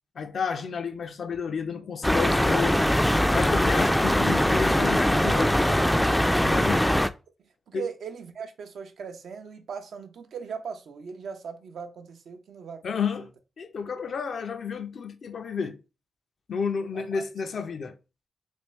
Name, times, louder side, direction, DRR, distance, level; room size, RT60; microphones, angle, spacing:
voice 1, 0.2-2.9 3.3-5.6 6.4-6.9 7.7-7.8 12.8-13.3 13.6-15.8 16.5-18.0, left 6 dB, 70° left, 0.5 m, -31 dB
sound 1, 2.0-7.1, left 1 dB, 5° left, 0.3 m, -22 dB
voice 2, 7.4-13.0 16.9-17.2, right 6 dB, 80° right, 0.5 m, -40 dB
3.4 x 2.6 x 3.0 m
cardioid pair, 50°, 0 cm